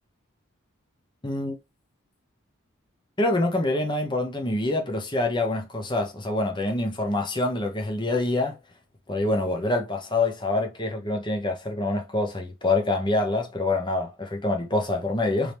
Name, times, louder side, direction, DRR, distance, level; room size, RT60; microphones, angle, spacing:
voice 1, 1.2-1.6 3.2-8.6 9.1-15.5, left 2 dB, 20° left, 0.9 m, -26 dB
3.5 x 3.3 x 2.9 m
head